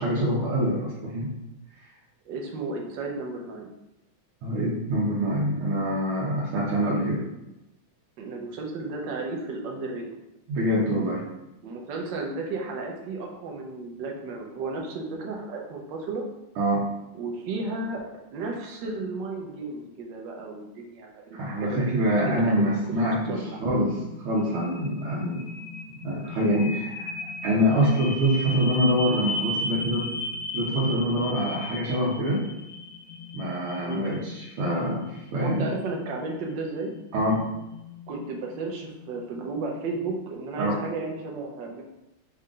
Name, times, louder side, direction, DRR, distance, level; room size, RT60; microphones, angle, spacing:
voice 1, 0.0-1.3 4.4-7.2 10.5-11.2 16.6-16.9 21.3-25.5 26.0-27.1 27.4-30.1 30.5-32.5 33.3-35.7 37.1-37.4 40.6-40.8, equal, 80° right, -7 dB, 1.7 m, -25 dB
voice 2, 2.3-3.7 8.2-10.1 11.6-16.2 17.2-22.3 23.3-23.8 33.8-34.0 35.4-36.9 38.1-41.8, right 3 dB, 65° right, 0 dB, 1.3 m, -34 dB
sound 1, 22.6-40.0, left 2 dB, 70° left, 1.3 m, -37 dB
5.4 x 2.4 x 3.7 m, 0.93 s
omnidirectional pair, 2.3 m